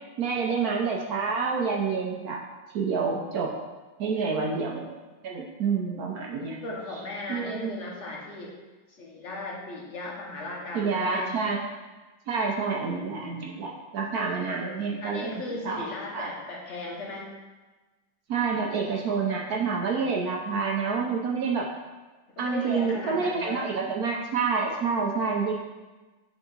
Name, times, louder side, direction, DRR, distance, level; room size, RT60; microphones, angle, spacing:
voice 1, 0.2-2.4 2.7-3.5 4.0-4.9 5.2-6.6 7.3-7.7 10.7-11.6 12.3-15.9 16.1-16.3 18.3-21.7 22.4-25.5, right 5 dB, 70° right, -1 dB, 0.9 m, -28 dB
voice 2, 6.6-8.5 8.9-11.3 15.0-17.3 22.4-23.7, left 2 dB, 45° left, -2 dB, 1.0 m, -36 dB
7.9 x 3.7 x 3.9 m, 1.2 s
omnidirectional pair, 2.3 m